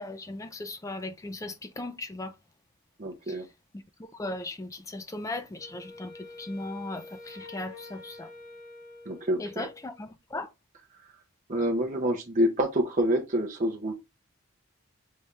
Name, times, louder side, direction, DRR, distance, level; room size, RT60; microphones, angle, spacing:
voice 1, 0.0-2.3 4.2-6.1 6.4-8.3 9.4-10.5, left 2 dB, 15° left, 0.3 m, -37 dB
voice 2, 3.0-3.5 9.1-9.7 11.5-13.9, equal, 35° right, 0.6 m, -27 dB
Wind instrument woodwind instrument, 5.6-10.0, left 3 dB, 85° left, 1.8 m, -47 dB
5.5 x 3.3 x 2.4 m
head